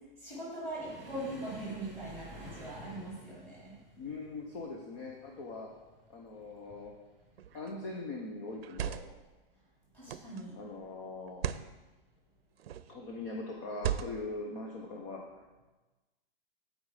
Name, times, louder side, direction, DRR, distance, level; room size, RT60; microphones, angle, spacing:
voice 1, 0.2-3.7 9.9-10.6, right 1 dB, 5° left, -8 dB, 3.9 m, -41 dB
sound 1, 0.8-8.0 8.3-8.7 9.0-9.2 10.0-10.6 11.6-11.8 13.1-13.3, right 1 dB, 10° right, 2.4 m, -51 dB
voice 2, 4.0-5.7 6.1-6.9 7.5-9.0 10.6-11.4 12.9-15.2, left 3 dB, 30° left, 0 dB, 0.9 m, -41 dB
sound 2, 7.4-7.7 8.5-9.3 10.1-10.4 11.3-11.7 12.6-13.0 13.8-14.4, right 9 dB, 80° right, 0.7 m, -37 dB
14.5 x 5.3 x 5.0 m, 1.2 s
hypercardioid pair, 175°, 30 cm